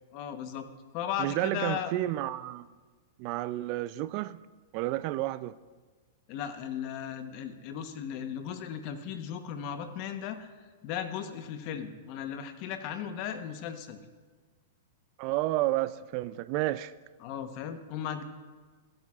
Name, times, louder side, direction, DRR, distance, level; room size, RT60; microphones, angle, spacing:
voice 1, 0.1-0.7 0.9-1.9 6.3-10.5 10.8-14.0 17.2-18.2, left 9 dB, 45° left, 1.0 m, -36 dB
voice 2, 1.2-2.7 3.2-4.4 4.7-5.6 15.2-16.9, right 16 dB, 45° right, 0.4 m, -31 dB
15.5 x 8.7 x 2.4 m
hypercardioid pair, 125°, 0 cm